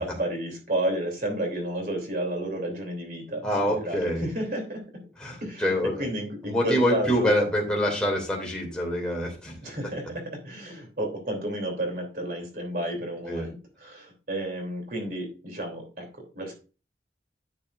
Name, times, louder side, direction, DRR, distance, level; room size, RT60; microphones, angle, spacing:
voice 1, 0.0-5.0 5.4-7.3 9.6-16.5, right 1 dB, 50° right, 3 dB, 3.2 m, -32 dB
voice 2, 3.4-4.2 5.2-6.0 6.4-9.6 13.3-13.5, equal, 5° left, -2 dB, 2.7 m, -26 dB
10.5 x 7.1 x 2.6 m, 0.34 s
head